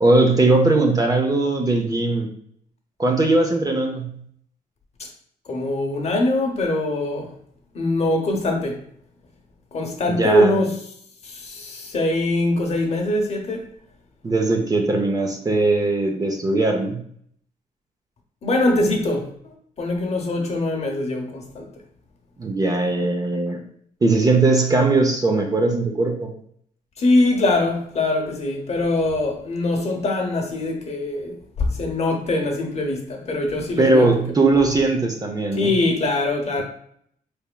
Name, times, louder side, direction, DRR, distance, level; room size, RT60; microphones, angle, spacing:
voice 1, 0.0-2.3 3.0-4.2 10.1-10.6 14.2-17.0 22.4-23.6 24.0-26.3 33.8-35.8, right 2 dB, 25° right, 0.5 m, -19 dB
voice 2, 5.5-7.3 7.7-8.8 9.7-10.8 11.2-13.7 18.4-21.7 27.0-34.1 35.5-36.6, left 2 dB, 45° left, 0.9 m, -22 dB
4.5 x 3.4 x 2.2 m
wide cardioid pair, 130°, 15 cm